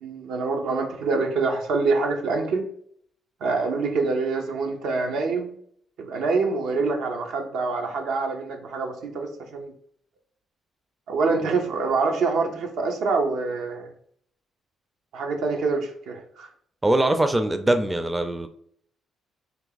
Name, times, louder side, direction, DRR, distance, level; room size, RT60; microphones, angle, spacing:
voice 1, 0.0-2.6 3.4-5.5 6.0-9.7 11.1-13.9 15.1-16.5, right 4 dB, 80° right, 3 dB, 0.7 m, -25 dB
voice 2, 16.8-18.5, right 1 dB, 15° right, 7 dB, 0.4 m, -22 dB
3.4 x 2.8 x 3.9 m, 0.63 s
cardioid pair, 90°, 0 cm